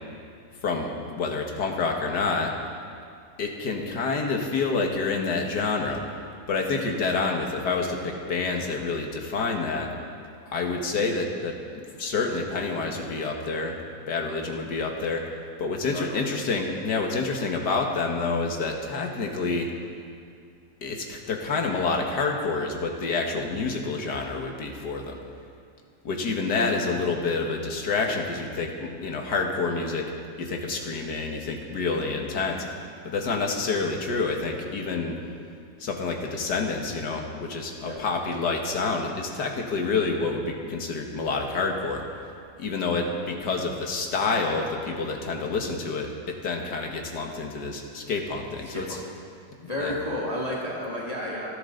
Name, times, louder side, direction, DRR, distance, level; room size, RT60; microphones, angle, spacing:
voice 1, 0.6-2.5 3.4-6.0 6.5-9.9 10.5-15.2 15.6-19.7 20.8-25.2 26.0-30.1 30.4-32.6 33.0-35.2 35.8-42.0 42.6-49.0 49.8-49.9, left 4 dB, 75° left, 2 dB, 2.2 m, -28 dB
voice 2, 15.9-16.3 26.5-26.7 37.8-38.0 48.7-49.0 49.6-51.5, left 1 dB, 20° left, -5 dB, 1.9 m, -31 dB
27.0 x 12.0 x 3.9 m, 2.4 s
omnidirectional pair, 1.8 m